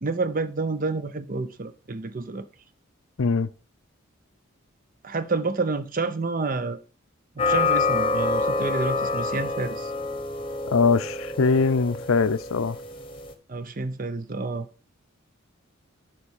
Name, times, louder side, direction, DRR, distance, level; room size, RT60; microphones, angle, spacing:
voice 1, 0.0-2.5 5.0-6.8 7.4-9.9 13.5-14.7, right 3 dB, 40° right, 0.7 m, -29 dB
voice 2, 3.2-3.5 10.7-12.8, left 4 dB, 85° left, 0.6 m, -22 dB
sound 1, 7.4-13.3, left 3 dB, 25° left, 1.0 m, -27 dB
10.0 x 4.5 x 6.4 m
head